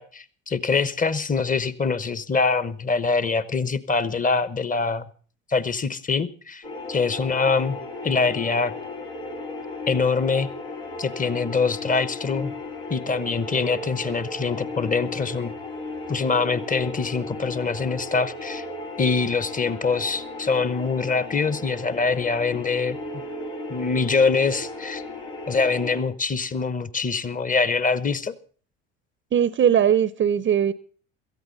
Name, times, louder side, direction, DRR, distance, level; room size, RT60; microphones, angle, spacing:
voice 1, 0.0-5.1 5.5-6.6 6.9-8.7 9.9-10.5 11.0-12.5 12.9-15.5 16.1-18.6 19.0-23.0 23.7-25.0 25.5-28.3, left 4 dB, 20° left, 17 dB, 1.1 m, -24 dB
sound 1, 6.6-26.0, left 2 dB, 80° left, 4.1 m, -35 dB
voice 2, 29.3-30.7, right 9 dB, 35° right, 18 dB, 0.7 m, -19 dB
17.5 x 14.0 x 4.0 m, 0.42 s
hypercardioid pair, 65°, 35 cm